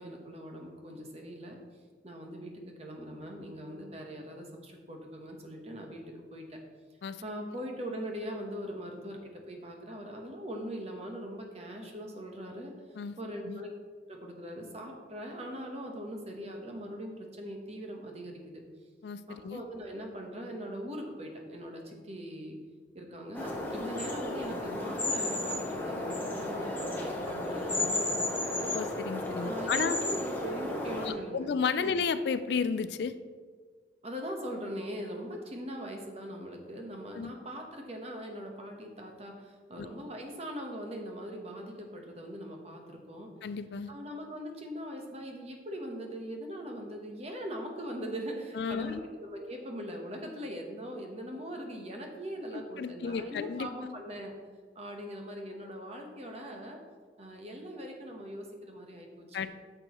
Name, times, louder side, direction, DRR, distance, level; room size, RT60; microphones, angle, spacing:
voice 1, 0.0-1.6 2.0-6.6 7.2-12.7 13.2-13.7 14.1-18.6 19.3-22.6 22.9-28.7 29.4-31.5 31.8-32.0 34.0-43.3 43.9-54.3 54.7-56.8 57.2-59.4, equal, 35° right, 2 dB, 1.1 m, -41 dB
voice 2, 19.0-19.6 28.7-30.0 31.0-33.1 37.1-37.3 39.8-39.9 43.4-43.9 48.5-49.0 52.8-53.7 59.3-59.5, left 5 dB, 60° left, 13 dB, 0.3 m, -32 dB
sound 1, 23.3-31.1, left 2 dB, 10° left, 0.9 m, -33 dB
9.7 x 6.9 x 3.1 m, 1.5 s
head